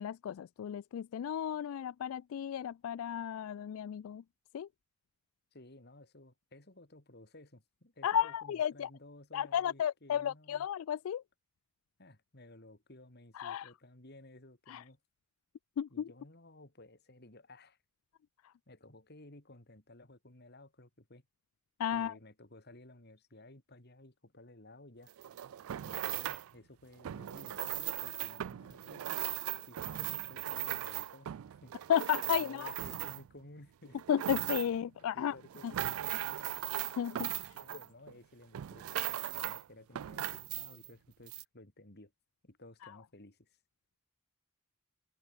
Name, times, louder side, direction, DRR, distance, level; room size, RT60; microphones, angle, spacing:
voice 1, 0.0-4.2 4.5-4.7 8.0-8.9 9.3-11.2 13.4-13.7 14.7-14.8 15.8-16.1 21.8-22.1 31.9-32.7 34.1-35.3 35.6-35.7 36.9-37.3, left 9 dB, 85° left, 0.3 m, -33 dB
voice 2, 5.5-10.7 12.0-15.0 15.9-17.8 18.7-21.2 21.9-25.1 25.8-29.1 29.7-31.7 32.2-34.0 35.1-36.5 37.5-42.1 42.4-43.5, left 1 dB, 50° left, 3.3 m, -56 dB
sound 1, 25.1-26.5 27.0-33.4 33.9-34.9 35.4-38.2 38.5-39.6 40.0-40.9 41.3-41.4, right 13 dB, 90° right, 0.3 m, -38 dB
head